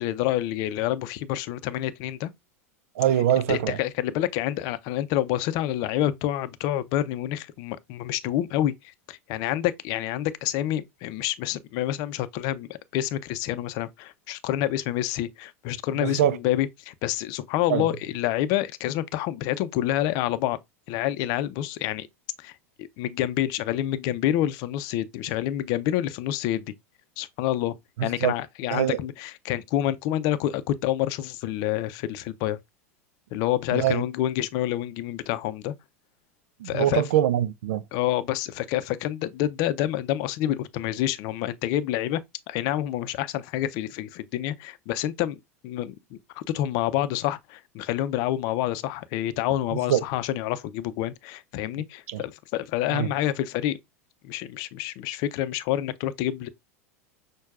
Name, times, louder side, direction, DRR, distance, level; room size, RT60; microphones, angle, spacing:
voice 1, 0.0-2.3 3.5-20.6 20.9-22.1 22.4-22.5 22.8-26.7 27.2-27.7 28.0-32.6 33.3-35.7 36.6-37.0 37.9-42.2 42.5-45.4 45.6-53.8 54.2-56.5, left 13 dB, 50° left, 0.5 m, -28 dB
voice 2, 3.0-3.8 16.0-16.4 17.7-17.9 28.0-28.3 28.7-29.0 33.7-34.0 36.6-37.8 49.9-50.0 52.1-52.2 52.9-53.1, right 11 dB, 70° right, 0.4 m, -23 dB
6.2 x 2.2 x 2.4 m
hypercardioid pair, 95°, 8 cm